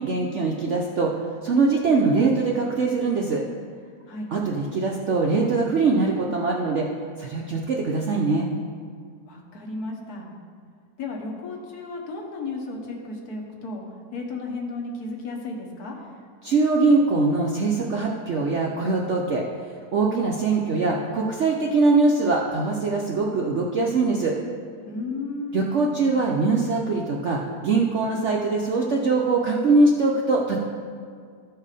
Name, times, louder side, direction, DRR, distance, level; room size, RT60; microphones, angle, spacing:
voice 1, 0.0-3.4 4.3-6.9 7.2-8.5 16.4-24.4 25.5-30.6, right 3 dB, 60° right, -1 dB, 0.7 m, -22 dB
voice 2, 9.3-10.3 11.0-13.8 14.1-16.0 24.8-25.6, left 3 dB, 60° left, -1 dB, 1.6 m, -33 dB
13.0 x 4.7 x 4.9 m, 2.1 s
omnidirectional pair, 1.9 m